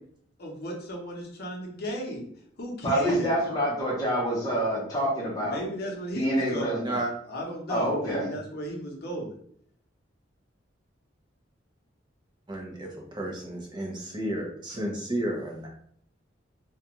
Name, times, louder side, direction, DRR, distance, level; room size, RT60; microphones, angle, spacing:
voice 1, 0.4-2.3 2.6-3.3 5.4-7.0 7.3-9.3, equal, 55° left, 0 dB, 0.7 m, -34 dB
voice 2, 2.8-5.6 6.1-6.8 7.7-8.3, equal, 20° left, -6 dB, 0.7 m, -27 dB
voice 3, 6.7-7.1 12.5-15.7, right 1 dB, 25° right, -1 dB, 0.6 m, -32 dB
2.4 x 2.2 x 2.9 m, 0.64 s
head